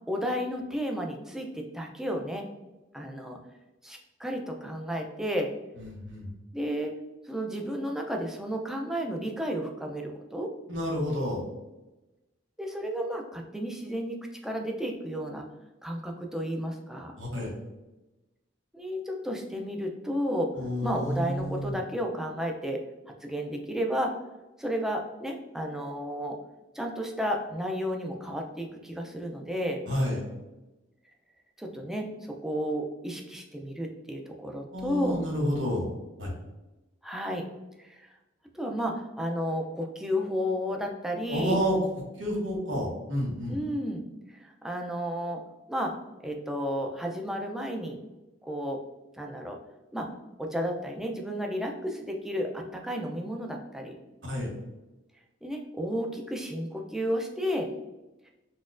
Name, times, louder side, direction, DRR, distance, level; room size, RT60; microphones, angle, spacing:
voice 1, 0.1-2.5 2.9-3.4 3.8-5.5 6.5-6.9 7.2-10.5 12.6-15.4 15.8-17.2 18.7-20.5 20.8-22.8 23.2-24.2 24.6-26.4 26.7-29.8 31.6-35.2 37.0-37.5 37.8-38.1 38.5-41.6 43.5-45.4 45.7-45.9 46.2-48.0 48.4-48.8 49.2-49.6 49.9-50.1 50.4-54.0 55.4-57.7, equal, 5° right, 1 dB, 0.3 m, -32 dB
voice 2, 5.8-6.3 10.7-11.4 17.2-17.5 20.6-21.8 29.9-30.2 34.7-35.8 36.2-36.3 41.3-41.8 42.2-43.6 54.2-54.5, equal, 85° right, -1 dB, 1.0 m, -30 dB
4.1 x 2.2 x 2.4 m, 1.0 s
head